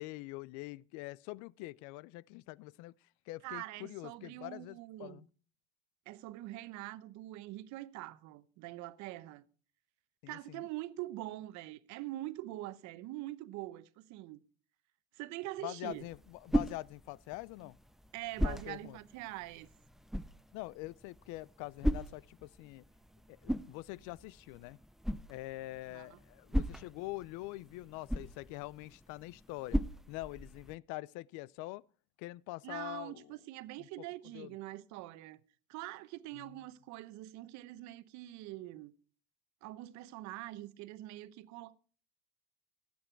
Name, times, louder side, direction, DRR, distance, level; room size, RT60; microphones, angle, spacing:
voice 1, 0.0-2.9 3.3-5.3 10.2-10.7 15.6-17.8 18.4-19.0 20.5-22.8 23.3-24.8 25.3-29.8 30.1-31.8 32.2-33.3 33.8-34.1 34.3-34.5 36.3-36.5, left 19 dB, 75° left, 0.5 m, -44 dB
voice 2, 3.4-5.2 6.1-9.4 10.3-14.4 15.1-16.1 18.1-19.7 25.9-26.2 32.6-35.4 35.7-38.9 39.6-41.7, right 16 dB, 70° right, 0.9 m, -44 dB
sound 1, 15.8-30.8, equal, ahead, 0.5 m, -39 dB
15.0 x 8.8 x 4.5 m
supercardioid pair, 100°, 30 cm